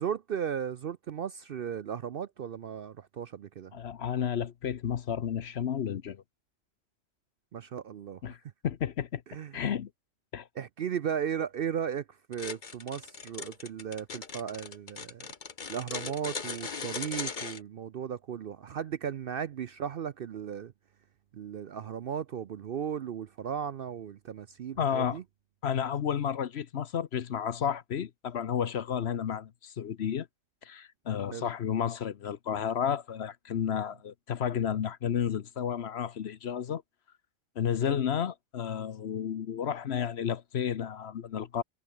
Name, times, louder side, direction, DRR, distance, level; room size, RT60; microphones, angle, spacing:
voice 1, 0.0-3.7 7.5-8.2 9.3-9.6 10.6-15.3 15.7-20.7 21.3-25.2 31.3-31.5 37.8-38.0, right 8 dB, 55° right, 0.7 m, -36 dB
voice 2, 3.7-6.2 8.2-8.4 8.6-9.2 9.5-9.9 10.3-10.5 24.8-25.2 25.6-30.3 30.6-36.8 37.6-41.6, left 8 dB, 55° left, 1.0 m, -32 dB
sound 1, 12.3-17.6, left 5 dB, 40° left, 1.3 m, -39 dB
omnidirectional pair, 1.3 m